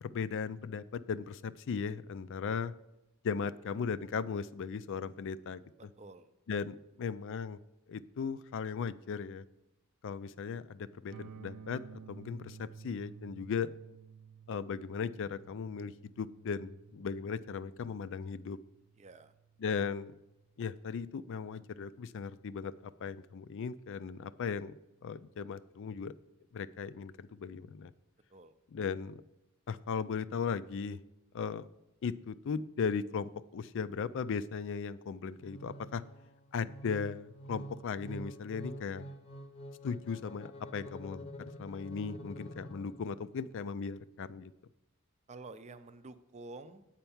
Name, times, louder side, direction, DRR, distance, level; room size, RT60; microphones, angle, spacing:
voice 1, 0.0-2.7 3.2-5.6 6.5-7.6 7.9-9.4 10.0-13.7 14.5-18.6 19.6-20.1 20.6-26.1 26.5-27.9 28.7-29.2 29.7-31.0 31.3-31.7 32.0-36.0 36.5-39.1 39.8-44.5, left 6 dB, 60° left, 16 dB, 0.4 m, -37 dB
voice 2, 5.8-6.3 19.0-19.3 28.3-28.5 45.3-46.9, right 3 dB, 30° right, 11 dB, 0.5 m, -49 dB
sound 1, 11.1-21.0, right 6 dB, 85° right, 0.3 m, -54 dB
sound 2, 35.4-43.3, equal, 25° left, 0.7 m, -47 dB
8.8 x 4.5 x 7.0 m, 0.93 s
head